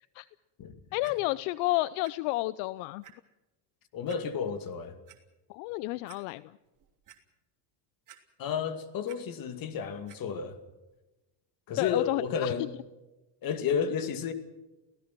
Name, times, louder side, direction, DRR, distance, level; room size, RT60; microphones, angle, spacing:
voice 1, 0.9-3.0 5.5-6.5 11.8-12.5, left 19 dB, 75° left, 0.7 m, -31 dB
Clock, 1.0-1.1 2.0-2.1 2.6-2.7 3.0-3.1 4.1-4.2 4.8-5.2 5.7-5.8 6.1-6.2 6.6-7.2 8.1-8.6 8.8-9.2 10.1-10.2 10.9-11.0, right 11 dB, 40° right, 3.1 m, -53 dB
voice 2, 3.9-5.0 8.4-10.6 11.7-12.7 13.4-14.3, left 7 dB, 45° left, 2.5 m, -32 dB
29.0 x 17.5 x 6.1 m
cardioid pair, 130°, 47 cm